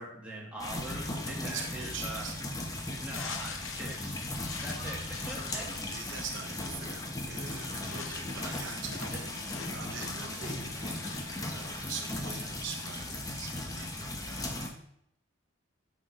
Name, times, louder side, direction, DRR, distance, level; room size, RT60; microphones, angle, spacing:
voice 1, 0.0-2.3 3.0-4.2 4.6-5.7 10.4-10.6, right 1 dB, 5° right, -4 dB, 1.8 m, -42 dB
sound 1, 0.6-14.7, left 1 dB, 20° left, 0.8 m, -37 dB
voice 2, 1.4-2.3 5.9-14.5, right 6 dB, 70° right, 3 dB, 0.9 m, -44 dB
sound 2, 2.2-12.0, left 6 dB, 80° left, 0.7 m, -46 dB
8.7 x 5.9 x 3.3 m, 0.72 s
head